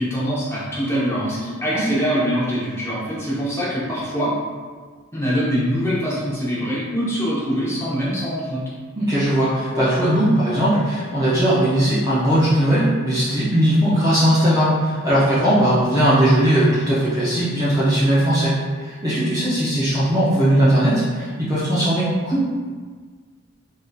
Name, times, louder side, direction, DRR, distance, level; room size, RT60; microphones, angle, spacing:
voice 1, 0.0-4.3 5.1-8.7, equal, 15° left, -9 dB, 0.8 m, -23 dB
voice 2, 9.0-22.5, right 1 dB, 15° right, -10 dB, 0.5 m, -18 dB
3.4 x 2.6 x 2.3 m, 1.5 s
head